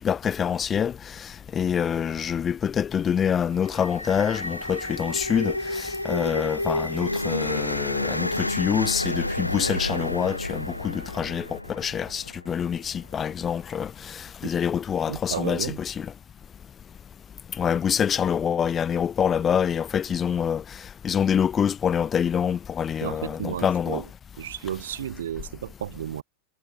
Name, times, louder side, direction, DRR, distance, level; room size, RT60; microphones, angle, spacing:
voice 1, 0.0-16.1 17.6-20.6 21.0-24.0, left 8 dB, 25° left, 0.5 m, -26 dB
sound 1, 3.5-12.8, left 1 dB, 85° left, 0.5 m, -30 dB
voice 2, 15.1-15.8 23.0-24.1 24.4-26.2, right 10 dB, 60° right, 2.7 m, -33 dB
figure-of-eight pair, 90°, 0 cm